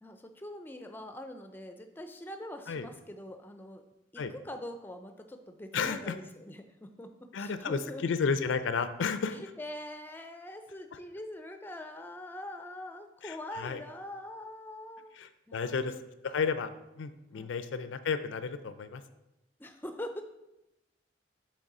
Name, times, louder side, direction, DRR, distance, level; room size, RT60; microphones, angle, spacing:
voice 1, 0.0-3.8 4.1-8.0 9.3-15.1 15.5-16.0 17.3-17.5 19.6-20.2, left 1 dB, 10° left, 6 dB, 0.4 m, -43 dB
voice 2, 5.7-6.1 7.3-9.4 13.2-13.8 15.2-15.9 16.2-16.7 17.0-19.0, left 5 dB, 85° left, 12 dB, 0.4 m, -32 dB
6.5 x 3.3 x 4.8 m, 0.93 s
head